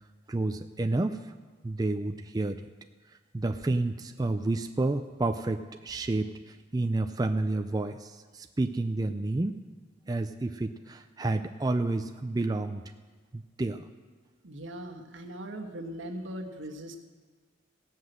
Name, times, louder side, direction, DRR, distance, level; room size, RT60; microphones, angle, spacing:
voice 1, 0.3-1.2 1.6-2.6 3.3-9.6 10.1-12.8 13.3-13.9, right 2 dB, 20° right, 7 dB, 0.3 m, -30 dB
voice 2, 14.4-17.0, right 1 dB, 85° right, 3 dB, 1.4 m, -39 dB
17.0 x 5.6 x 7.8 m, 1.5 s
head